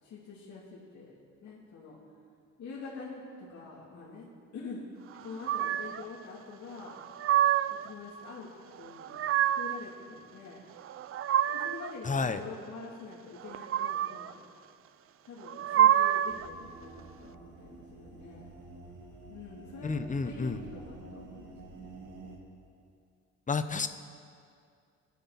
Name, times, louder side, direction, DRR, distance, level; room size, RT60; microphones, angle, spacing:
voice 1, 0.0-2.0 2.6-4.8 5.2-7.0 7.7-8.5 8.7-10.6 11.5-14.4 15.2-18.5 19.3-19.9 20.2-22.1, left 4 dB, 65° left, -7 dB, 2.9 m, -46 dB
sound 1, 5.4-6.0 6.9-7.9 8.8-9.8 10.8-11.9 13.4-14.3 15.4-16.5, right 11 dB, 50° right, 0.4 m, -27 dB
voice 2, 12.0-12.4 19.8-20.6 23.5-23.9, left 4 dB, 25° left, 10 dB, 0.9 m, -30 dB
sound 2, 16.3-22.4, right 3 dB, 70° right, 2.7 m, -49 dB
24.5 x 8.3 x 4.2 m, 2.3 s
cardioid pair, 90°, 30 cm